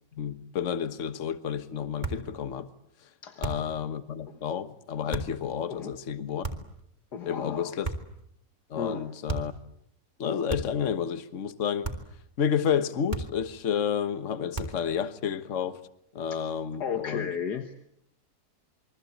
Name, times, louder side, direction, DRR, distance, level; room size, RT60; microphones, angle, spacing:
voice 1, 0.2-2.7 3.4-6.4 7.2-7.9 8.7-9.5 10.2-11.9 12.4-15.8 16.1-17.3, left 8 dB, 45° left, 1.5 m, -30 dB
sound 1, 2.0-2.3 3.4-3.8 5.1-5.4 6.4-6.8 7.8-8.2 9.3-9.6 10.5-10.9 11.8-12.2 13.1-13.5 14.5-14.9, right 3 dB, 25° right, 3.4 m, -35 dB
voice 2, 3.2-3.6 4.3-4.4 5.7-5.9 7.1-7.8 8.8-9.1 16.3-16.4 16.8-17.7, left 7 dB, 65° left, 1.9 m, -34 dB
28.0 x 23.5 x 8.6 m
omnidirectional pair, 1.9 m